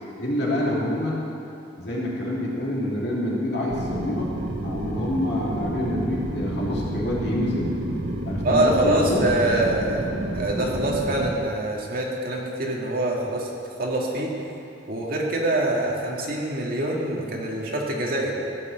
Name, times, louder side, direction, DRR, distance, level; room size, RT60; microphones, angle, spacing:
voice 1, 0.2-1.2 1.8-4.3 4.6-7.7 8.2-9.2, left 1 dB, 60° left, -4 dB, 2.6 m, -27 dB
sound 1, 3.7-11.3, right 1 dB, 80° right, 1.2 m, -30 dB
voice 2, 8.4-13.5 13.8-14.4 14.9-18.3, right 1 dB, 55° right, -2 dB, 2.0 m, -25 dB
15.0 x 5.9 x 7.9 m, 2.7 s
head